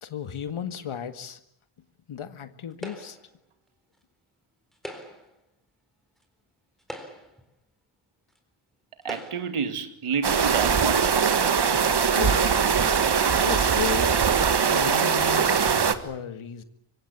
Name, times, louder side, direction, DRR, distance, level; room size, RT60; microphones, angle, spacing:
voice 1, 0.0-1.4 2.1-3.2 12.2-12.5 13.4-14.2 14.7-15.6 15.9-16.6, left 9 dB, 75° left, 2.0 m, -34 dB
sound 1, 2.8-3.3 4.7-5.4 6.2-6.3 6.8-7.5 8.3-8.4 9.0-9.6, equal, ahead, 4.0 m, -41 dB
voice 2, 9.0-11.1, right 6 dB, 90° right, 2.5 m, -29 dB
sound 2, 10.2-15.9, right 6 dB, 50° right, 1.7 m, -21 dB
25.0 x 24.5 x 8.4 m
wide cardioid pair, 160°, 50 cm